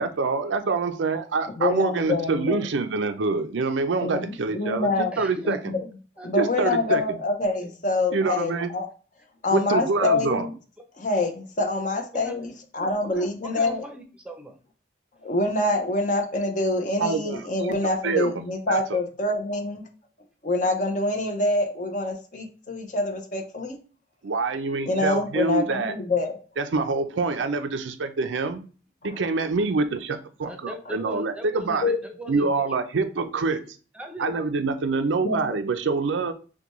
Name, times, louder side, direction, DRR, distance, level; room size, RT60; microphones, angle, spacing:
voice 1, 0.0-5.7 6.4-7.2 8.1-8.7 9.5-10.5 17.0-17.4 17.7-17.8 18.0-19.0 24.2-25.9 26.6-28.6 29.0-31.9 32.3-33.7 34.2-36.3, right 4 dB, 90° right, 0.5 m, -26 dB
voice 2, 1.6-2.6 4.0-5.1 5.4-5.8 6.2-8.9 9.4-10.5 11.0-13.8 15.2-19.8 20.4-23.8 24.9-26.4 29.0-29.2 31.8-32.0 35.2-35.4, left 2 dB, 45° left, 0.7 m, -26 dB
voice 3, 5.1-5.5 6.2-6.3 7.6-7.7 12.2-12.4 12.8-14.6 30.4-32.5 33.9-34.3, equal, 5° right, 0.6 m, -39 dB
5.8 x 2.3 x 3.0 m
head